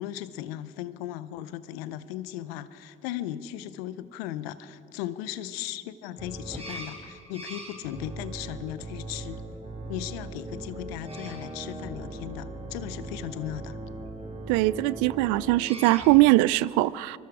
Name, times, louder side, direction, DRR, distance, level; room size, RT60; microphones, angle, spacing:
voice 1, 0.0-9.4 9.9-13.8, left 12 dB, 90° left, 0.6 m, -37 dB
sound 1, 6.2-16.2, right 2 dB, 20° right, 3.9 m, -39 dB
voice 2, 14.5-17.2, right 18 dB, 80° right, 0.4 m, -21 dB
25.5 x 21.0 x 4.8 m
hypercardioid pair, 45°, 29 cm